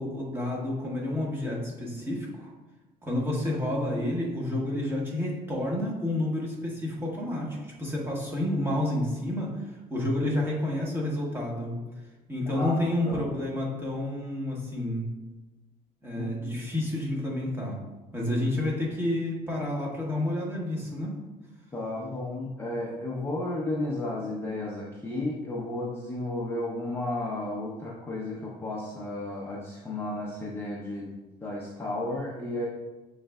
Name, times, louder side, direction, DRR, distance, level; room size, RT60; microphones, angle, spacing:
voice 1, 0.0-2.5 3.0-11.7 12.3-15.1 16.0-17.8 18.1-21.1, left 1 dB, 15° right, -3 dB, 1.2 m, -30 dB
voice 2, 12.5-13.2 16.2-16.7 21.7-31.1 31.4-32.7, left 2 dB, 15° left, -6 dB, 0.7 m, -33 dB
6.4 x 3.2 x 2.3 m, 1.1 s
cardioid pair, 110°, 17 cm